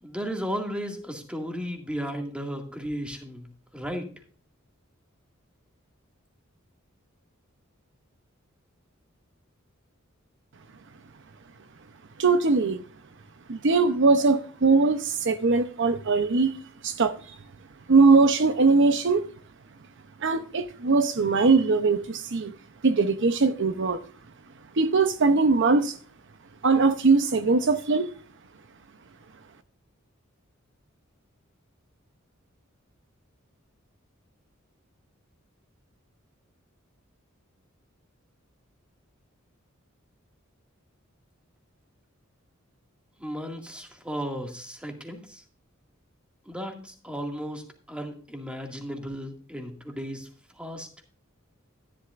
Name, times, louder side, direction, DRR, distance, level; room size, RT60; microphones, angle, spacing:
voice 1, 0.0-3.5 3.7-4.1 43.2-45.4 46.5-50.3 50.5-50.9, equal, 5° right, 2.1 m, -35 dB
voice 2, 12.2-12.8 13.5-16.5 16.8-17.1 17.9-19.2 20.2-22.5 22.8-24.0 24.8-26.0 26.6-28.1, right 4 dB, 60° right, 0.7 m, -21 dB
13.0 x 11.0 x 2.5 m
head